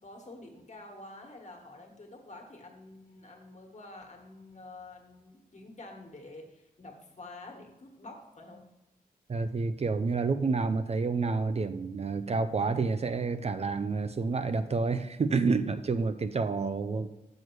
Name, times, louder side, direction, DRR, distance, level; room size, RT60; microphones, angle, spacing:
voice 1, 0.0-8.6, left 2 dB, 50° left, 1 dB, 1.6 m, -48 dB
voice 2, 9.3-17.1, right 4 dB, 45° right, 10 dB, 0.4 m, -29 dB
6.5 x 6.3 x 4.6 m, 0.95 s
wide cardioid pair, 110°, 15 cm